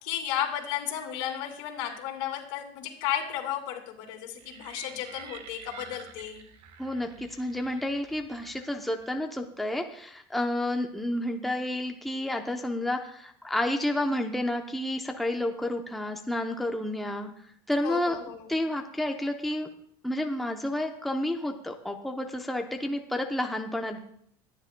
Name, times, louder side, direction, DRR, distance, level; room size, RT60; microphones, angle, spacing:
voice 1, 0.0-6.4 17.8-18.6, left 10 dB, 80° left, 3 dB, 2.6 m, -33 dB
sound 1, 4.4-9.2, right 7 dB, 45° right, 1.2 m, -49 dB
voice 2, 6.8-17.3 17.7-18.2 18.5-19.7 20.0-24.0, left 1 dB, ahead, 3 dB, 0.7 m, -30 dB
23.0 x 10.0 x 2.2 m, 0.68 s
cardioid pair, 160°, 13 cm